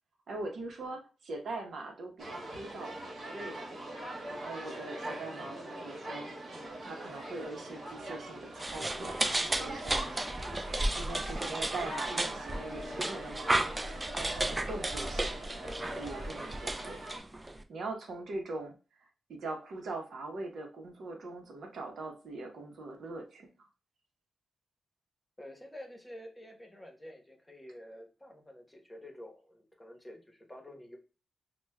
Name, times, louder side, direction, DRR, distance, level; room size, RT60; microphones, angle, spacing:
voice 1, 0.3-3.7 4.2-10.1 10.7-13.8 14.1-15.6 15.9-17.3 17.7-23.5, right 2 dB, 75° right, 3 dB, 0.8 m, -42 dB
sound 1, 2.2-17.2, right 1 dB, 55° right, 1.4 m, -42 dB
sound 2, 4.6-16.0, left 2 dB, 40° left, 0.6 m, -53 dB
sound 3, 8.6-17.6, right 1 dB, 20° right, 0.4 m, -34 dB
voice 2, 25.4-31.0, left 1 dB, 10° left, 2 dB, 1.0 m, -49 dB
5.9 x 2.2 x 2.2 m, 0.33 s
cardioid pair, 75°, 0 cm